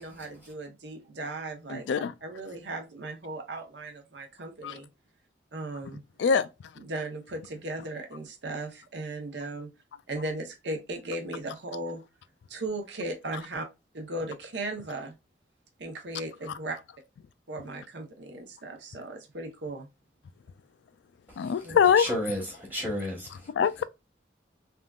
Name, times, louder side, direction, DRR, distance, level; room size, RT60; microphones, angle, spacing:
voice 1, 0.0-1.8 2.2-4.9 5.5-6.0 6.8-9.7 10.1-12.0 12.5-13.7 13.9-15.1 15.8-16.8 17.5-19.9 21.6-21.8, right 2 dB, 70° right, 0.9 m, -37 dB
voice 2, 1.7-2.1 4.6-4.8 6.2-6.5 16.5-16.6 21.4-22.1 23.5-23.8, left 7 dB, 75° left, 0.3 m, -23 dB
voice 3, 22.0-23.5, equal, 10° right, 1.1 m, -32 dB
3.5 x 2.4 x 2.3 m
head